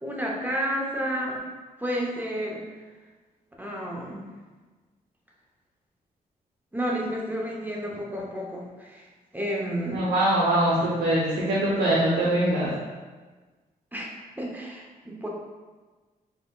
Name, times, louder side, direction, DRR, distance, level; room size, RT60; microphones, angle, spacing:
voice 1, 0.0-1.5 1.8-2.7 3.6-4.3 6.7-9.1 9.3-10.1 13.9-14.1 14.4-15.3, equal, 10° right, -2 dB, 0.7 m, -31 dB
voice 2, 9.9-12.7, right 1 dB, 90° right, -6 dB, 0.7 m, -23 dB
3.9 x 3.6 x 2.3 m, 1.3 s
cardioid pair, 85°, 16 cm